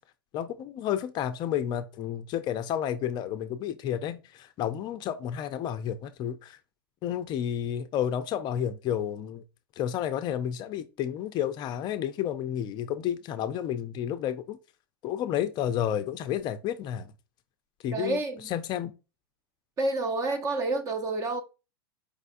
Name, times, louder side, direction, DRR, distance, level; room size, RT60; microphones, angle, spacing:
voice 1, 0.3-6.6 7.0-9.4 9.8-14.6 15.0-17.1 17.8-18.2 18.5-18.9, left 10 dB, 35° left, 0.5 m, -31 dB
voice 2, 17.9-18.5 19.8-21.4, right 2 dB, 25° right, 0.8 m, -29 dB
4.9 x 3.3 x 2.5 m
hypercardioid pair, 105°, 13 cm